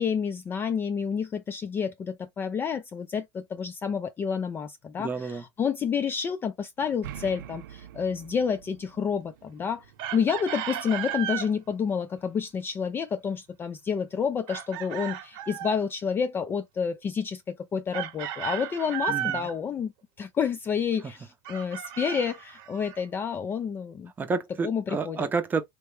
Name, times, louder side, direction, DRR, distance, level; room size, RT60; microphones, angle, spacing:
voice 1, 0.0-9.9 10.1-19.9 20.2-24.1 24.6-25.3, left 6 dB, 20° left, 0.3 m, -29 dB
voice 2, 5.0-5.5 19.1-19.5 24.2-25.6, right 4 dB, 20° right, 0.6 m, -30 dB
sound 1, 6.8-10.8, right 10 dB, 80° right, 0.5 m, -46 dB
Chicken rooster, 10.0-11.5 14.5-15.8 17.9-19.5 21.4-23.0, right 12 dB, 55° right, 0.9 m, -34 dB
3.1 x 2.1 x 3.1 m
supercardioid pair, 125°, 10 cm